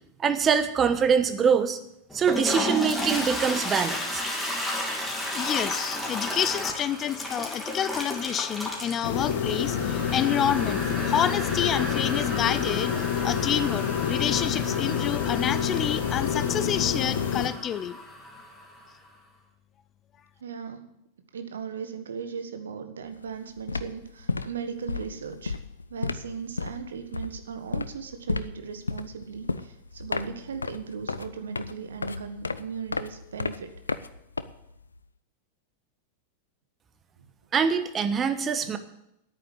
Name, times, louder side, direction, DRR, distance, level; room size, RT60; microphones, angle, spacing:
voice 1, 0.2-1.8 2.1-4.2 37.5-38.8, right 6 dB, 25° right, 10 dB, 1.1 m, -24 dB
Toilet flush, 2.1-18.9, left 1 dB, 5° left, 2.7 m, -33 dB
voice 2, 5.3-10.8 11.1-18.0, left 9 dB, 30° left, 15 dB, 0.6 m, -28 dB
sound 1, 9.0-17.5, left 8 dB, 60° left, 1.4 m, -28 dB
voice 3, 20.4-20.9 21.3-25.6 25.9-33.7 38.6-38.7, right 6 dB, 65° right, 8 dB, 1.3 m, -37 dB
sound 2, 23.1-23.3 23.6-35.0, left 4 dB, 75° left, 0.5 m, -33 dB
10.5 x 9.1 x 8.2 m, 0.81 s
figure-of-eight pair, 90°, 0 cm